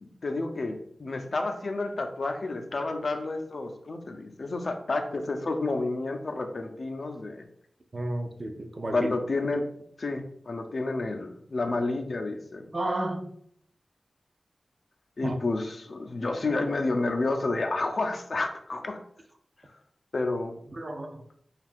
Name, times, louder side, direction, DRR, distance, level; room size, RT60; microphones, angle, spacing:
voice 1, 0.0-7.4 8.9-9.7 10.0-12.7 15.2-19.0 20.1-20.6, left 2 dB, 60° left, 0.4 m, -30 dB
voice 2, 7.9-9.1 12.7-13.4 15.2-15.4 20.7-21.3, right 1 dB, 40° right, 0.4 m, -32 dB
2.6 x 2.3 x 3.4 m
wide cardioid pair, 80°, 0 cm